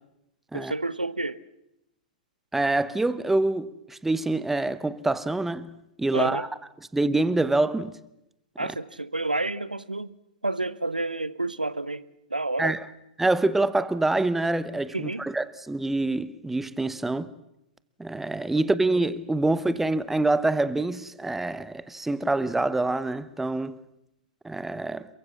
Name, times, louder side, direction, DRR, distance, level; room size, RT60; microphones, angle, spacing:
voice 1, 0.5-1.4 6.1-6.5 8.6-10.1 10.4-12.0 12.3-12.8 14.9-15.3, right 2 dB, 85° right, 0.9 m, -29 dB
voice 2, 2.5-6.5 6.9-7.9 12.6-12.8 13.2-17.3 18.0-23.8 24.4-25.1, right 2 dB, 5° right, 1.0 m, -26 dB
28.0 x 23.0 x 7.3 m
figure-of-eight pair, 105°, 4 cm